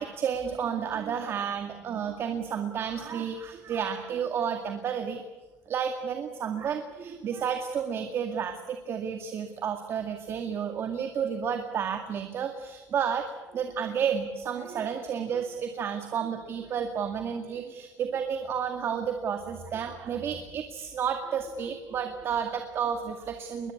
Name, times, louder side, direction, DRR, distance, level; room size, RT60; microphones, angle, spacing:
voice 1, 0.0-5.2 5.7-23.7, right 7 dB, 50° right, 6 dB, 2.1 m, -31 dB
22.0 x 21.0 x 9.8 m, 1.2 s
cardioid pair, 130°, 5 cm